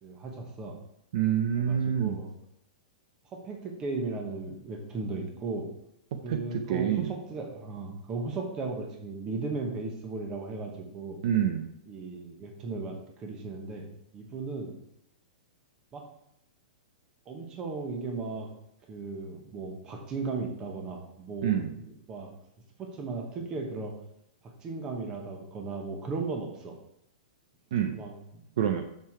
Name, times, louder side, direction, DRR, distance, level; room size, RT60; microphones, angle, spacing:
voice 1, 0.0-0.7 1.5-2.3 3.3-5.7 6.2-11.2 11.9-14.8 15.9-16.0 17.3-18.5 18.9-22.3 22.8-23.9 24.6-26.7 27.9-28.1, right 3 dB, 15° right, 2 dB, 1.2 m, -36 dB
voice 2, 1.1-2.2 6.3-7.1 11.2-11.7 21.4-21.7 27.7-28.0 28.6-28.8, right 9 dB, 50° right, 6 dB, 0.6 m, -27 dB
6.7 x 6.7 x 4.6 m, 0.78 s
supercardioid pair, 175°, 4 cm